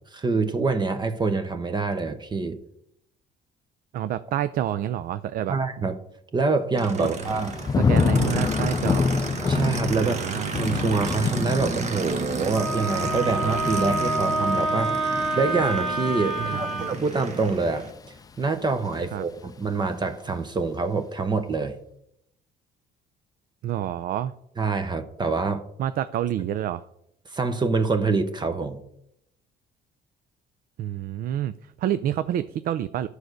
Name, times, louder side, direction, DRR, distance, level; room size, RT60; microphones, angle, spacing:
voice 1, 0.1-2.6 5.5-5.9 6.3-7.5 9.5-10.2 10.5-17.9 18.4-21.8 24.6-25.6 27.3-28.8, right 4 dB, 25° right, 9 dB, 0.8 m, -26 dB
voice 2, 3.9-5.6 7.0-7.1 7.9-9.1 10.0-10.5 16.4-16.9 19.1-19.2 23.6-24.3 25.8-26.8 30.8-33.1, right 11 dB, 60° right, 13 dB, 0.4 m, -28 dB
Aircraft, 6.8-17.9, right 4 dB, 40° right, 1.2 m, -33 dB
Thunder / Rain, 7.2-18.2 18.6-19.0, left 5 dB, 20° left, 0.4 m, -28 dB
Wind instrument woodwind instrument, 12.5-16.9, right 2 dB, ahead, 2.1 m, -27 dB
10.5 x 4.8 x 6.5 m, 0.76 s
cardioid pair, 110°, 17 cm